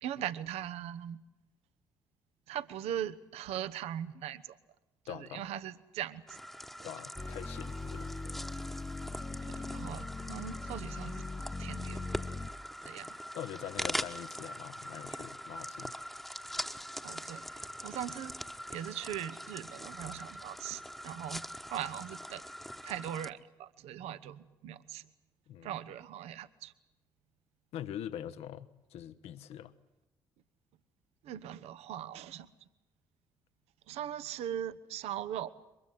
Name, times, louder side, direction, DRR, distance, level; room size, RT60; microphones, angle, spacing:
voice 1, 0.0-1.2 2.5-4.6 5.0-6.4 9.4-11.3 11.6-12.1 12.8-13.2 17.0-18.3 18.7-22.4 22.8-25.1 25.6-26.7 31.2-32.5 33.9-35.5, right 10 dB, 65° right, 13 dB, 1.1 m, -40 dB
voice 2, 5.1-5.5 6.8-8.1 13.3-15.9 25.5-25.8 27.7-29.7, left 10 dB, 65° left, 13 dB, 1.2 m, -43 dB
sound 1, 6.3-23.3, equal, ahead, 1.3 m, -42 dB
sound 2, 7.2-12.5, left 3 dB, 20° left, 1.2 m, -40 dB
23.5 x 22.0 x 7.8 m, 1.0 s
figure-of-eight pair, 45°, 11 cm